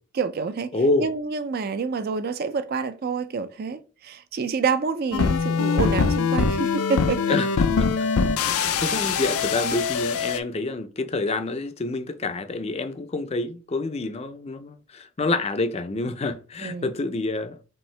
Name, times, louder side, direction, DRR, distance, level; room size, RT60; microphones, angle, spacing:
voice 1, 0.1-0.7 1.0-7.4 16.6-16.9, right 5 dB, 45° right, 0.4 m, -28 dB
voice 2, 0.7-1.1 7.3-8.1 8.4-17.6, left 3 dB, 30° left, 0.4 m, -27 dB
sound 1, 5.1-10.4, left 5 dB, 85° left, 0.5 m, -23 dB
4.4 x 3.6 x 3.2 m
head